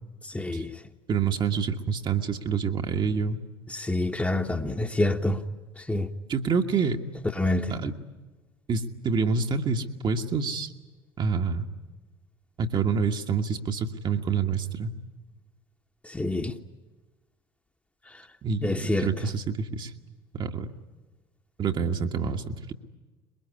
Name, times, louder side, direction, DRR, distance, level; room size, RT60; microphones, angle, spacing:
voice 1, 0.3-0.7 3.7-5.4 5.9-6.1 7.4-7.7 16.1-16.5 18.6-19.1, left 2 dB, 10° left, 1.4 m, -26 dB
voice 2, 1.1-3.4 6.3-7.0 7.7-7.9 8.7-10.7 11.2-11.6 12.6-14.9 18.4-19.9 20.3-20.7 21.6-22.7, right 5 dB, 35° right, 1.6 m, -27 dB
22.0 x 22.0 x 9.8 m
figure-of-eight pair, 60°, 13 cm